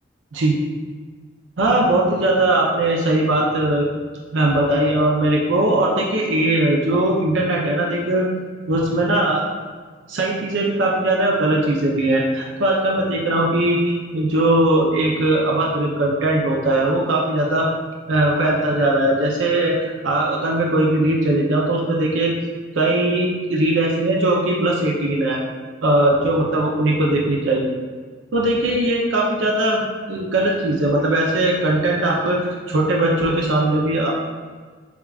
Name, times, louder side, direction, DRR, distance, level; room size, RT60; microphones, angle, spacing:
voice 1, 1.6-3.8 4.3-8.2 8.7-9.5 10.1-17.7 18.1-22.3 22.7-25.4 25.8-27.7 28.3-32.4 32.7-34.1, right 1 dB, 70° right, -2 dB, 0.5 m, -19 dB
7.0 x 2.4 x 2.4 m, 1.5 s
head